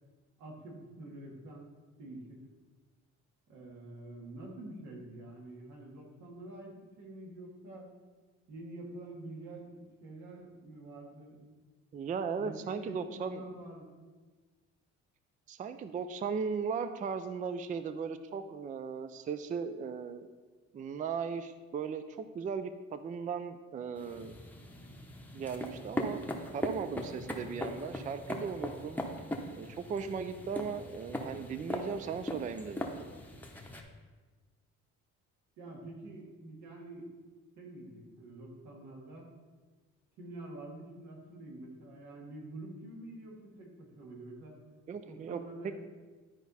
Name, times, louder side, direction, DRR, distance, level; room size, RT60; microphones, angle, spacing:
voice 1, 0.4-1.7 2.0-2.4 3.5-7.9 8.5-9.7 10.0-11.4 12.4-14.0 35.6-37.1 37.6-39.3 40.2-44.6 45.1-45.8, right 2 dB, 85° right, -1 dB, 2.1 m, -47 dB
voice 2, 11.9-13.4 15.5-20.3 20.7-24.3 25.3-26.2 26.5-29.0 29.6-32.9 44.9-45.4, right 6 dB, 25° right, 11 dB, 0.3 m, -37 dB
sound 1, 24.0-33.8, left 1 dB, 5° left, 0.8 m, -40 dB
11.5 x 4.7 x 4.1 m, 1.4 s
cardioid pair, 130°, 29 cm